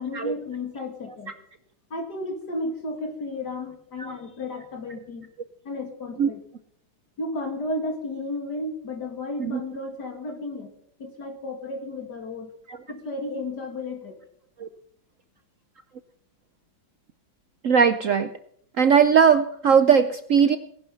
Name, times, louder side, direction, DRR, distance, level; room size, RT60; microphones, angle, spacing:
voice 1, 0.0-1.3 1.9-5.3 5.6-6.4 7.2-10.7 11.0-12.5 12.9-14.2, left 2 dB, 60° left, 5 dB, 2.9 m, -33 dB
voice 2, 17.6-18.3 18.8-20.6, right 7 dB, 60° right, 10 dB, 0.9 m, -19 dB
18.5 x 11.5 x 5.7 m, 0.66 s
omnidirectional pair, 2.0 m